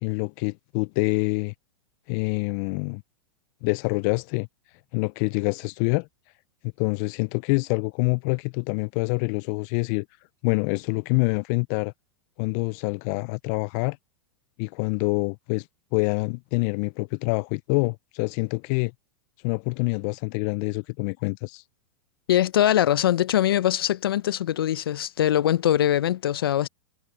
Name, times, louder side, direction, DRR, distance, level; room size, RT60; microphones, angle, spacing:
voice 1, 0.0-1.5 2.1-3.0 3.6-4.5 4.9-6.1 6.8-10.1 10.4-11.9 12.4-14.0 14.6-15.7 15.9-18.9 19.4-21.6, left 30 dB, 50° left, 0.4 m, -26 dB
voice 2, 22.3-26.7, left 11 dB, 75° left, 0.8 m, -22 dB
hypercardioid pair, 105°, 12 cm